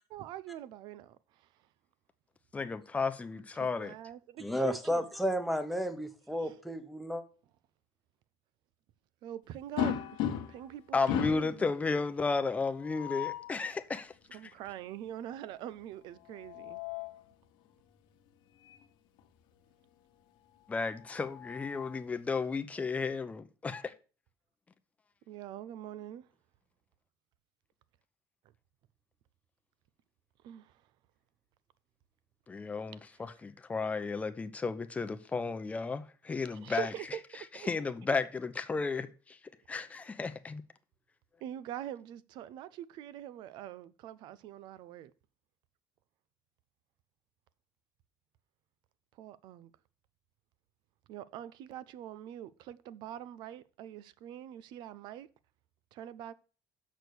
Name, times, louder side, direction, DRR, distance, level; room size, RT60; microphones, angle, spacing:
voice 1, 0.1-1.5 3.6-5.1 6.4-6.5 9.2-11.7 14.3-16.8 25.3-26.3 30.4-30.7 33.2-33.3 36.5-37.7 41.4-45.1 49.2-49.7 51.1-55.3 55.9-56.3, right 11 dB, 70° right, 0.6 m, -44 dB
voice 2, 2.5-3.9 10.9-14.4 20.7-23.9 32.5-36.9 37.7-39.4 39.7-40.6, left 4 dB, 15° left, 0.7 m, -33 dB
voice 3, 4.4-7.2, equal, ahead, 1.1 m, -32 dB
sound 1, 9.8-10.7 11.1-11.6 12.8-13.5 16.2-17.2 18.6-18.8 19.2-19.3 20.8-22.1, left 10 dB, 85° left, 1.3 m, -36 dB
6.3 x 6.2 x 6.9 m
cardioid pair, 140°, 8 cm